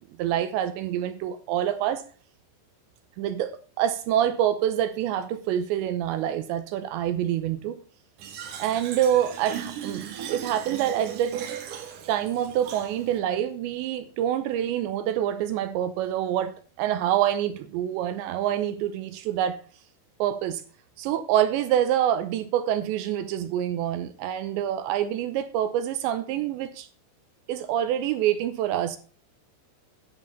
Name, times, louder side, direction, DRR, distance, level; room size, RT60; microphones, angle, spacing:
voice 1, 0.2-2.0 3.2-3.5 3.8-7.8 8.6-11.4 12.1-19.6 20.2-20.6 21.0-26.9 27.5-29.0, right 11 dB, 80° right, 2.8 m, -26 dB
Fill (with liquid), 8.2-13.2, right 8 dB, 65° right, 2.2 m, -37 dB
11.0 x 7.2 x 5.7 m
omnidirectional pair, 5.5 m